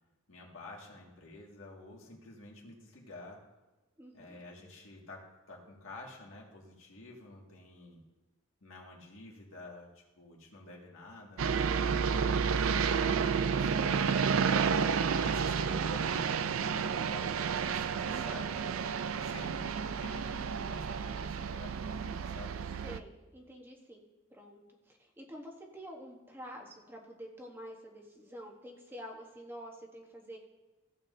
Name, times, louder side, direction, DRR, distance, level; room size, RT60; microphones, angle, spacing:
voice 1, 0.3-3.4 4.1-8.0 8.6-14.2 15.0-17.3 17.6-18.6 19.2-19.7 20.0-22.6, left 2 dB, 70° left, -2 dB, 2.1 m, -49 dB
voice 2, 4.0-4.4 22.8-24.0 24.3-30.4, equal, 10° right, 0 dB, 1.1 m, -48 dB
sound 1, 11.4-23.0, right 6 dB, 75° right, 0.4 m, -31 dB
15.5 x 7.5 x 2.7 m, 1.1 s
head